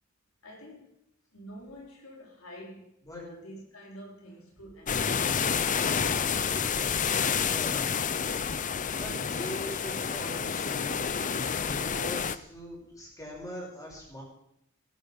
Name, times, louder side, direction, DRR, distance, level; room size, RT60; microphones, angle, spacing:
voice 1, 0.4-0.9 1.3-5.4, equal, 85° left, -1 dB, 4.2 m, -48 dB
sound 1, 4.9-12.4, left 6 dB, 40° left, 0.6 m, -29 dB
voice 2, 7.4-8.0 9.0-10.9 11.6-14.2, equal, 15° left, -2 dB, 6.2 m, -41 dB
17.5 x 13.5 x 5.3 m, 0.76 s
head